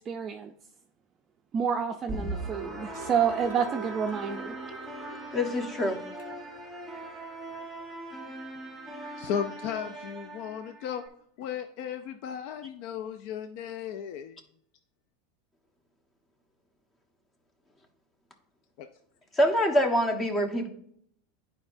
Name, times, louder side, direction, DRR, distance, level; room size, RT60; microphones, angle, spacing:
voice 1, 0.1-0.5 1.5-4.6, right 7 dB, 30° right, 4 dB, 0.4 m, -29 dB
sound 1, 2.1-11.1, right 2 dB, 5° right, 1.1 m, -40 dB
sound 2, 2.6-5.3 5.7-5.8 6.2-6.4 7.5-7.6, right 2 dB, 80° left, 1.3 m, -45 dB
voice 2, 5.3-6.0 19.3-20.7, equal, 20° left, 5 dB, 1.1 m, -25 dB
voice 3, 9.2-11.0 11.4-14.4 18.8-18.9, left 8 dB, 60° left, 7 dB, 0.5 m, -35 dB
11.0 x 4.7 x 2.6 m, 0.68 s
supercardioid pair, 135°, 0 cm